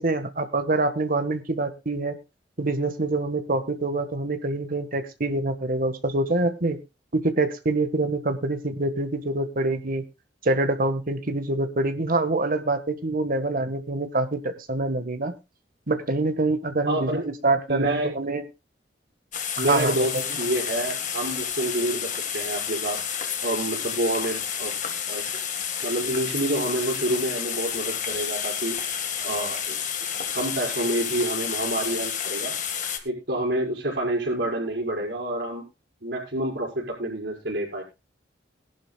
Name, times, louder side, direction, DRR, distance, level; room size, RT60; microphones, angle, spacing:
voice 1, 0.0-2.1 2.6-6.8 7.1-10.0 10.4-15.3 15.9-18.5 19.6-20.4, right 2 dB, 50° right, 8 dB, 1.6 m, -25 dB
voice 2, 16.9-17.3 17.7-18.2 19.6-24.8 25.1-25.3 25.8-28.8 29.2-29.8 30.3-32.6 33.0-35.6 36.0-37.8, right 1 dB, 70° right, -9 dB, 5.4 m, -28 dB
sound 1, 19.3-33.0, left 8 dB, 45° left, 1.8 m, -30 dB
20.5 x 11.5 x 2.4 m, 0.26 s
head